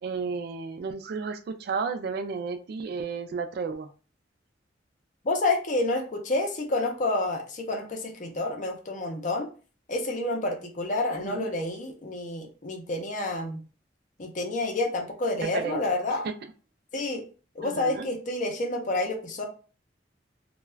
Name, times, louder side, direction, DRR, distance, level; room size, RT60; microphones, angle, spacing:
voice 1, 0.0-3.9 11.2-11.5 15.5-15.8 16.2-16.3 17.6-18.1, right 5 dB, 55° right, 10 dB, 0.3 m, -32 dB
voice 2, 5.2-9.5 9.9-13.6 14.2-16.3 16.9-17.2 17.6-19.5, left 2 dB, 45° left, 3 dB, 0.5 m, -29 dB
2.3 x 2.2 x 3.2 m, 0.37 s
head